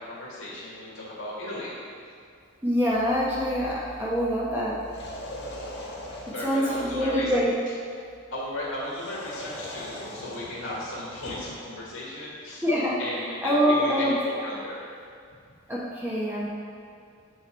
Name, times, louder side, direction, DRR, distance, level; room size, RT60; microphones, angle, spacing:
voice 1, 0.0-1.7 6.1-7.3 8.3-12.6 13.0-14.8, left 1 dB, 80° left, -7 dB, 1.8 m, -35 dB
voice 2, 2.6-4.7 6.4-7.5 12.6-13.0 13.4-14.1 15.7-16.5, equal, 10° right, -8 dB, 1.0 m, -25 dB
sound 1, 4.8-6.7 8.9-11.6, left 1 dB, 55° left, 1.6 m, -40 dB
7.9 x 5.6 x 4.5 m, 2.3 s
head